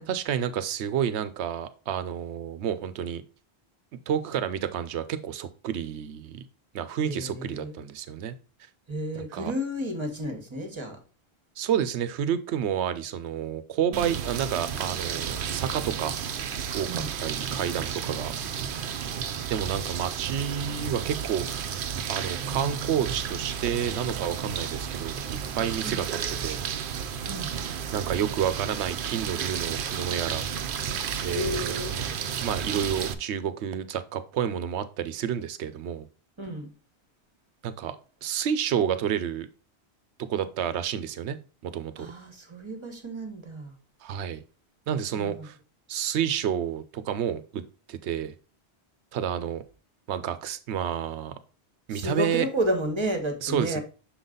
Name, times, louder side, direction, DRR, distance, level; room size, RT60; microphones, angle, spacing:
voice 1, 0.1-3.2 4.1-6.4 6.7-8.3 9.1-9.5 11.6-16.2 16.7-18.3 19.5-21.8 22.1-25.2 25.6-26.0 26.4-26.6 27.5-30.5 31.2-31.7 32.4-36.1 37.6-38.0 38.2-39.5 40.3-41.4 41.6-42.1 44.0-44.4 44.9-45.6 45.9-47.6 47.9-48.3 49.1-49.6 50.1-51.4 51.9-52.5 53.4-53.8, right 9 dB, 85° right, 0.9 m, -30 dB
voice 2, 7.0-7.8 8.9-11.0 13.9-14.1 16.9-17.1 25.8-26.0 27.3-27.5 31.3-31.9 36.4-36.7 42.0-43.7 45.1-45.5 51.9-53.8, equal, 25° right, 1.1 m, -31 dB
sound 1, 13.9-33.1, right 7 dB, 60° right, 0.7 m, -32 dB
6.3 x 3.9 x 3.8 m
omnidirectional pair, 1.1 m